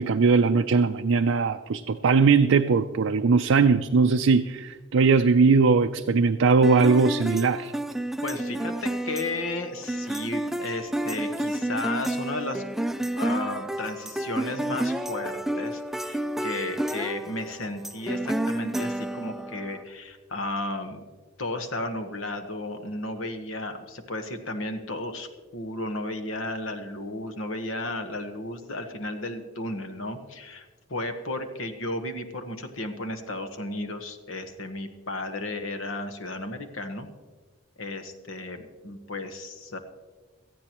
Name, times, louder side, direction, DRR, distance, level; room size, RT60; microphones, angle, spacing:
voice 1, 0.0-7.7, right 4 dB, 75° right, 6 dB, 0.4 m, -20 dB
sound 1, 6.6-19.8, right 1 dB, ahead, 0.3 m, -30 dB
voice 2, 8.2-12.6 13.2-21.0 21.4-37.1 37.8-39.8, left 2 dB, 80° left, 7 dB, 1.3 m, -34 dB
18.0 x 14.0 x 3.0 m, 1.3 s
head